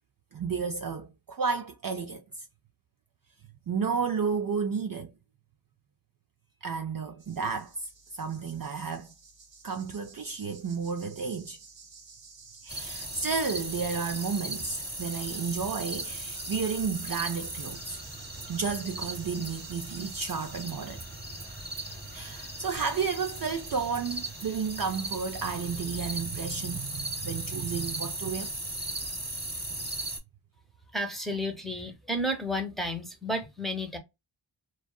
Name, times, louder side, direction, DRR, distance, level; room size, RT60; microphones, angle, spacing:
voice 1, 0.3-2.2 3.7-5.1 6.6-7.9 8.2-9.1 9.6-11.6 12.6-18.0 18.5-21.0 22.1-28.5, right 5 dB, 45° right, 0.4 m, -32 dB
sound 1, 7.2-20.6, right 4 dB, 65° right, 0.9 m, -52 dB
sound 2, 12.7-30.2, right 2 dB, 20° right, 1.0 m, -38 dB
voice 2, 30.9-34.0, equal, ahead, 0.8 m, -32 dB
2.6 x 2.3 x 2.2 m
wide cardioid pair, 80°, 48 cm